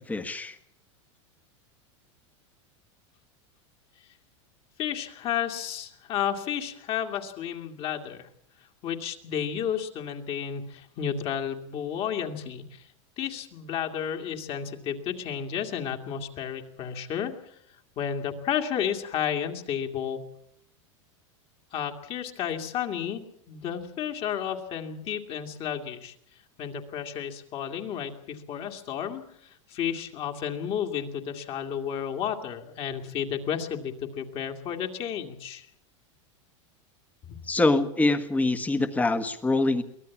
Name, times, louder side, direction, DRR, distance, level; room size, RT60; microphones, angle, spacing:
voice 1, 0.1-0.6 37.5-39.8, left 2 dB, 10° left, 11 dB, 1.4 m, -24 dB
voice 2, 4.8-8.3 8.8-12.9 13.2-17.6 18.0-20.2 21.7-26.1 26.6-35.7, left 8 dB, 35° left, 5 dB, 2.3 m, -32 dB
23.5 x 18.0 x 7.2 m, 0.71 s
supercardioid pair, 145°, 16 cm